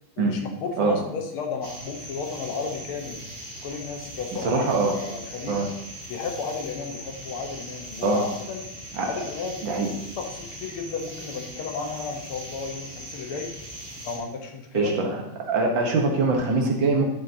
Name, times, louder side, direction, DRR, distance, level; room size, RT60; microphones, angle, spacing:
voice 1, 0.2-3.2 3.6-5.6 6.1-8.7 9.0-9.7 10.2-13.5 14.0-15.0, left 5 dB, 85° left, 2 dB, 2.0 m, -33 dB
sound 1, 1.6-14.2, right 1 dB, 35° right, 2.5 m, -40 dB
voice 2, 4.4-5.0 5.5-5.7 8.0-8.2 9.0-9.1 9.6-9.9 14.7-15.2 15.5-17.0, right 3 dB, 65° right, 1 dB, 1.9 m, -23 dB
10.5 x 7.5 x 2.8 m, 0.88 s
omnidirectional pair, 2.3 m